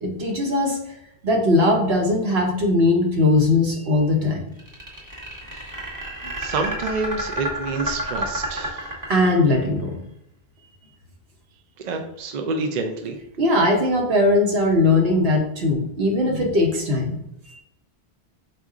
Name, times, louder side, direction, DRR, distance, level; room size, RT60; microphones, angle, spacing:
voice 1, 0.0-0.8 1.2-4.4 9.1-10.0 13.4-17.2 17.5-17.6, left 2 dB, 70° right, 1 dB, 1.1 m, -20 dB
sound 1, 4.6-9.6, equal, 20° right, 0.9 m, -30 dB
voice 2, 6.4-8.9 11.8-13.2, right 3 dB, 55° right, 5 dB, 0.5 m, -28 dB
4.3 x 2.5 x 3.6 m, 0.78 s
omnidirectional pair, 1.1 m